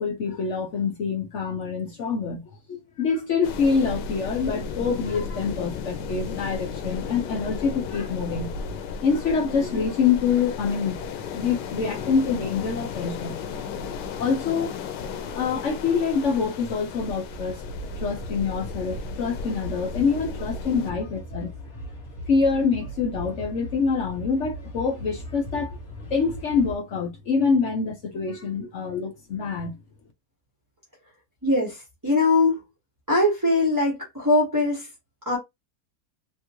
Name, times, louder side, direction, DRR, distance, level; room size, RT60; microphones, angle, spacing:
voice 1, 0.0-2.4 2.7-8.5 9.0-13.4 14.2-14.8 15.2-21.5 22.3-25.8 26.1-29.8, left 5 dB, 60° left, 0.8 m, -26 dB
sound 1, 3.4-20.9, left 5 dB, 90° left, 1.3 m, -34 dB
sound 2, 17.3-26.8, equal, 45° left, 1.6 m, -38 dB
voice 2, 31.4-32.6 33.1-34.9 35.2-35.4, left 2 dB, 15° right, 1.2 m, -21 dB
3.6 x 2.5 x 2.9 m
omnidirectional pair, 1.8 m